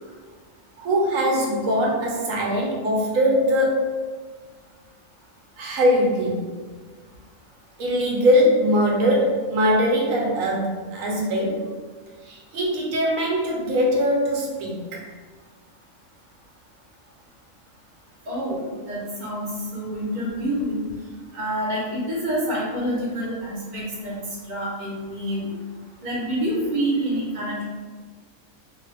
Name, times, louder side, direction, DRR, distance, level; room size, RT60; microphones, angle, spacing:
voice 1, 0.8-4.0 5.6-6.5 7.8-11.8 12.2-15.0, equal, 75° right, -2 dB, 1.1 m, -21 dB
voice 2, 18.3-20.9 21.3-24.1 24.5-25.5 26.0-27.6, right 1 dB, 40° right, -6 dB, 0.8 m, -27 dB
2.7 x 2.3 x 3.3 m, 1.4 s
omnidirectional pair, 1.4 m